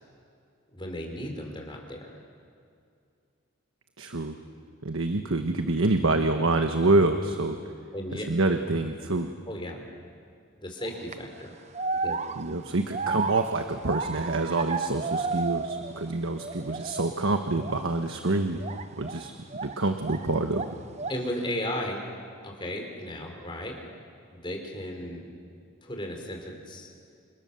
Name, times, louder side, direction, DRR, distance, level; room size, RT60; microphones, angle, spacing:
voice 1, 0.7-2.1 7.9-8.2 9.5-9.9 10.6-11.5 12.0-12.2 21.1-22.0 22.4-23.8 24.3-25.2 25.8-26.9, left 1 dB, 25° left, 1 dB, 4.4 m, -35 dB
voice 2, 4.0-4.4 4.8-7.6 8.1-9.3 12.3-18.6 19.0-19.3 19.6-20.6, right 2 dB, 85° right, 6 dB, 1.3 m, -26 dB
sound 1, 10.8-11.1 11.7-16.1 16.4-17.2 17.6-17.8 18.6-20.3 20.5-21.3, right 4 dB, 30° right, 0.6 m, -33 dB
29.5 x 26.5 x 7.1 m, 2.4 s
head